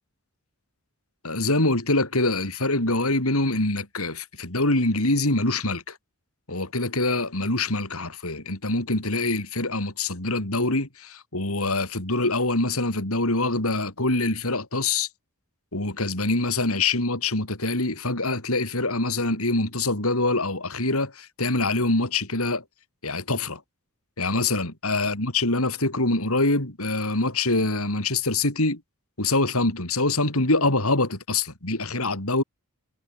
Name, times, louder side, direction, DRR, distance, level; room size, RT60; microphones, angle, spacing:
voice 1, 1.2-6.0 6.5-15.1 15.7-22.6 23.0-23.6 24.2-28.8 29.2-32.4, left 2 dB, 75° left, 5.4 m, -24 dB
head